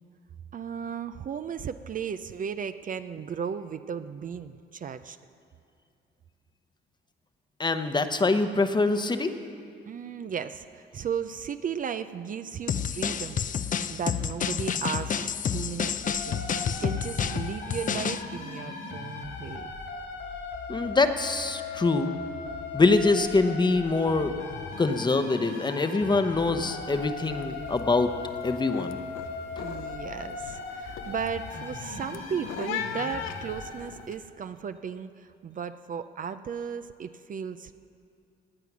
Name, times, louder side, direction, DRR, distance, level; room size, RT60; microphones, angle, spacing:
voice 1, 0.5-5.2 9.9-19.7 29.6-37.7, right 7 dB, 45° right, 11 dB, 0.5 m, -35 dB
voice 2, 7.6-9.3 20.7-22.1 22.7-24.3 24.8-28.1 28.4-29.0, left 3 dB, 20° left, 8 dB, 0.9 m, -24 dB
sound 1, 12.7-18.2, left 7 dB, 40° left, 0.5 m, -29 dB
sound 2, 16.0-33.7, left 4 dB, 70° left, 2.6 m, -38 dB
sound 3, 26.8-27.1 27.3-27.8 28.2-34.1, left 10 dB, 90° left, 0.6 m, -39 dB
17.5 x 9.4 x 6.1 m, 2.4 s
cardioid pair, 90°, 20 cm